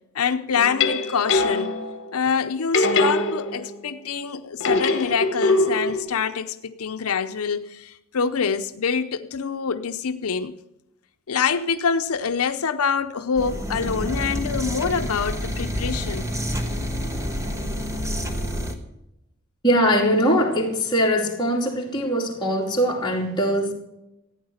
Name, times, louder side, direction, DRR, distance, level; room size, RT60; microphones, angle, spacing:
voice 1, 0.1-1.7 2.1-10.6 11.3-16.3, left 6 dB, 85° left, 0.6 m, -25 dB
sound 1, 0.6-2.0 2.7-3.9 4.6-6.0, left 2 dB, 55° left, 1.6 m, -22 dB
sound 2, 13.3-18.7, equal, 15° right, 1.3 m, -28 dB
voice 2, 19.6-23.7, equal, 20° left, 2.9 m, -21 dB
14.5 x 9.5 x 6.4 m
head